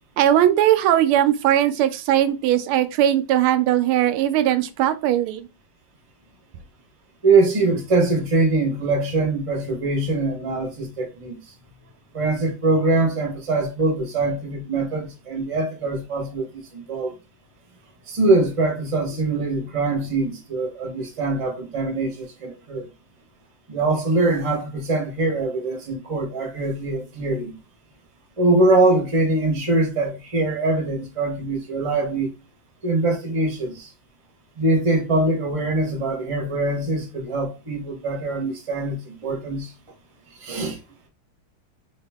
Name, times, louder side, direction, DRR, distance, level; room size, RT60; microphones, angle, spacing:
voice 1, 0.2-5.5, right 11 dB, 90° right, 1.4 m, -19 dB
voice 2, 7.2-11.4 12.1-17.1 18.1-22.9 23.7-27.5 28.4-32.3 32.8-33.9 34.6-39.7 40.4-40.8, right 2 dB, 25° right, 0.7 m, -23 dB
3.8 x 2.7 x 3.5 m
omnidirectional pair, 2.3 m